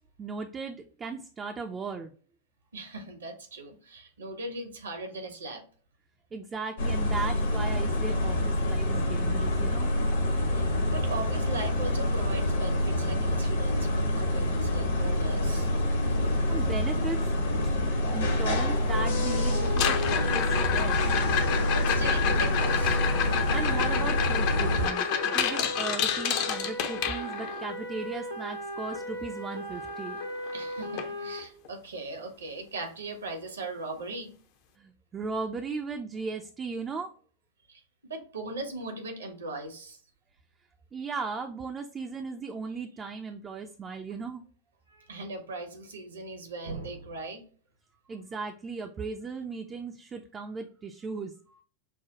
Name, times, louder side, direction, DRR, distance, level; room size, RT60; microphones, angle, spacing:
voice 1, 0.2-2.1 6.3-9.9 16.2-17.2 18.1-21.0 23.5-30.2 34.8-37.1 40.9-44.4 48.1-51.6, right 4 dB, 20° right, 4 dB, 0.4 m, -37 dB
voice 2, 2.7-5.6 10.5-15.7 21.7-23.0 30.5-34.3 37.7-40.0 44.9-47.4, right 2 dB, 70° right, 5 dB, 1.0 m, -39 dB
sound 1, 6.8-24.9, left 1 dB, 60° left, 1.0 m, -27 dB
sound 2, 18.9-31.4, left 1 dB, 85° left, 1.1 m, -37 dB
sound 3, 19.6-27.6 29.9-30.0 30.2-30.6 31.0-31.1 31.6-31.7 33.6-33.7, left 8 dB, 45° left, 0.6 m, -29 dB
5.8 x 2.2 x 2.8 m, 0.43 s
figure-of-eight pair, 90°, 0 cm